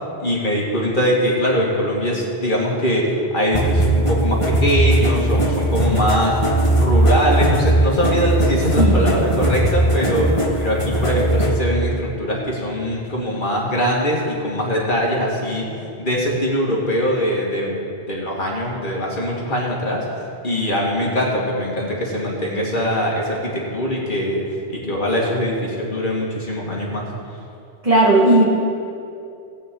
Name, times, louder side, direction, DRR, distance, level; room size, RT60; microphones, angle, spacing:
voice 1, 0.2-6.3 6.7-17.7 18.1-27.0, equal, 50° left, -3 dB, 2.1 m, -22 dB
sound 1, 3.5-11.6, right 1 dB, 30° left, 1.5 m, -18 dB
voice 2, 8.8-9.3 10.0-10.3 27.8-28.5, right 2 dB, 30° right, -6 dB, 2.2 m, -16 dB
18.5 x 8.6 x 3.8 m, 2.6 s
omnidirectional pair, 1.1 m